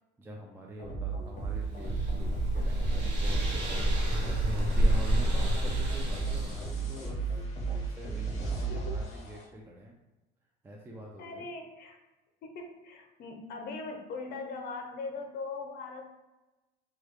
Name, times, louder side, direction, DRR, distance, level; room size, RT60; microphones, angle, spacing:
voice 1, 0.2-9.9 10.6-11.5, right 1 dB, 10° right, -1 dB, 0.4 m, -46 dB
sound 1, 0.8-9.5, right 5 dB, 40° left, 1.2 m, -35 dB
sound 2, 1.4-6.7, equal, 75° right, 1.0 m, -29 dB
voice 2, 4.4-4.8 5.2-5.6 8.7-9.0 11.2-12.0 12.4-16.1, left 3 dB, 55° left, 3 dB, 0.6 m, -41 dB
3.2 x 2.3 x 3.2 m, 1.1 s
cardioid pair, 120°, 19 cm